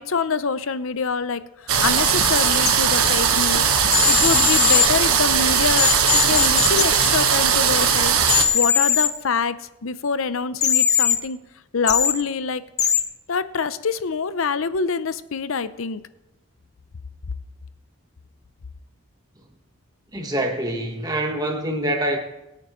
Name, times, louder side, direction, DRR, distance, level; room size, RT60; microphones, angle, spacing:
voice 1, 0.0-8.1 8.5-11.4 11.7-12.6 13.3-16.0, left 5 dB, 70° left, 0.6 m, -25 dB
sound 1, 1.7-8.5, right 7 dB, 80° right, 1.4 m, -19 dB
sound 2, 2.6-2.7 3.9-4.9 5.8-6.8 8.2-9.1 10.6-11.2 11.9-12.1 12.8-13.0, left 9 dB, 30° left, 0.7 m, -19 dB
voice 2, 20.1-22.2, right 1 dB, 15° right, 1.3 m, -25 dB
22.0 x 8.7 x 3.1 m
head